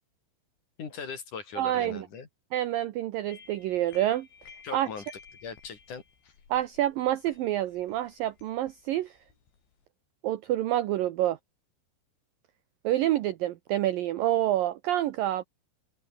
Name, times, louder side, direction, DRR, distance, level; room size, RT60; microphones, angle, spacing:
voice 1, 0.8-2.3 4.6-5.0 5.4-6.3, left 6 dB, 45° left, 4.4 m, -40 dB
voice 2, 1.6-2.1 2.5-4.3 4.7-4.9 6.5-9.1 10.2-11.4 12.8-15.4, right 13 dB, 75° right, 2.1 m, -27 dB
sound 1, 3.3-9.9, left 6 dB, 90° left, 7.9 m, -55 dB
open air
omnidirectional pair, 5.2 m